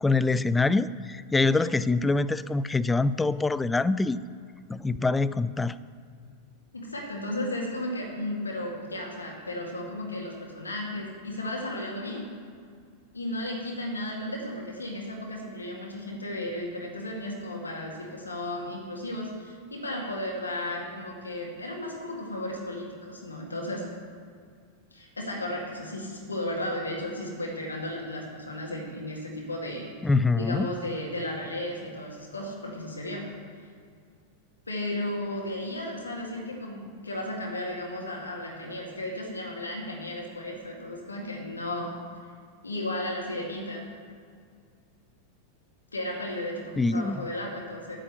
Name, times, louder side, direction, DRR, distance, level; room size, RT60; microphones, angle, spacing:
voice 1, 0.0-4.2 4.7-5.8 30.0-30.7 46.8-47.2, left 3 dB, 10° left, 16 dB, 0.3 m, -24 dB
voice 2, 6.7-12.2 13.1-23.9 24.9-29.9 30.3-33.3 34.7-42.0 42.6-43.9 45.9-48.0, left 1 dB, 80° left, -1 dB, 2.0 m, -34 dB
8.8 x 6.5 x 7.8 m, 2.1 s
figure-of-eight pair, 90°, 0 cm